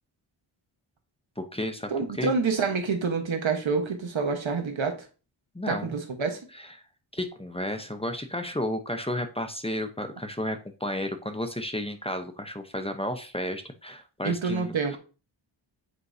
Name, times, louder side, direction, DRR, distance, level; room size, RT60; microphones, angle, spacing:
voice 1, 1.4-1.9 2.2-2.3 5.5-5.9 6.5-6.7 7.1-14.7, left 1 dB, 10° left, 6 dB, 0.8 m, -32 dB
voice 2, 1.9-5.0 5.7-6.4 14.2-15.0, right 4 dB, 75° right, 5 dB, 1.3 m, -27 dB
8.2 x 4.5 x 2.7 m, 0.35 s
wide cardioid pair, 65°, 47 cm